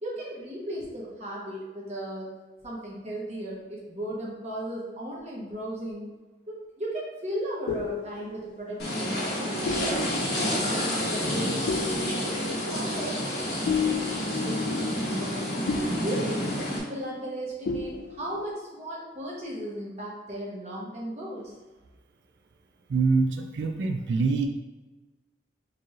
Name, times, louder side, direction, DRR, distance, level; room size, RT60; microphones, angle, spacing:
voice 1, 0.0-2.3 2.6-6.1 6.5-9.8 10.3-11.6 12.5-13.2 13.6-21.5, right 1 dB, 35° right, -5 dB, 1.0 m, -36 dB
spooky piano, 7.3-17.4 17.7-18.5, left 5 dB, 75° left, 0.3 m, -35 dB
sound 1, 8.8-16.8, equal, 60° left, 1.0 m, -29 dB
voice 2, 22.9-24.5, right 4 dB, 75° right, 4 dB, 0.3 m, -25 dB
4.7 x 3.1 x 2.4 m, 1.2 s
head